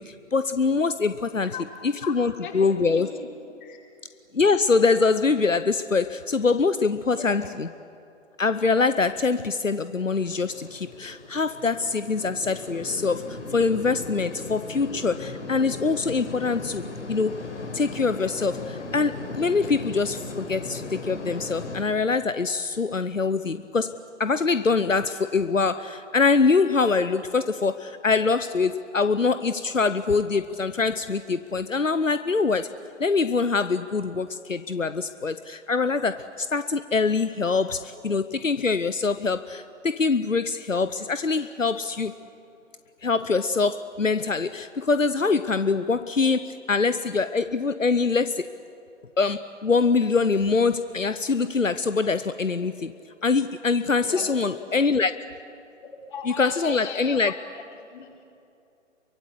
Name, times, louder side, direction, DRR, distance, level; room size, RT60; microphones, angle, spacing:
voice 1, 0.0-1.6 1.8-3.1 4.3-7.7 8.4-17.4 17.7-32.7 33.0-42.1 43.0-48.4 49.2-52.9 53.2-55.3 56.3-57.4, left 4 dB, 85° left, 13 dB, 0.9 m, -24 dB
voice 2, 1.5-3.3 3.6-3.8 7.1-7.5 54.0-54.3 54.5-54.7 56.1-58.2, left 6 dB, 40° left, 0 dB, 4.9 m, -39 dB
sound 1, 10.1-21.8, left 3 dB, 65° left, 4.6 m, -37 dB
29.5 x 24.0 x 8.3 m, 2.7 s
figure-of-eight pair, 130°, 38 cm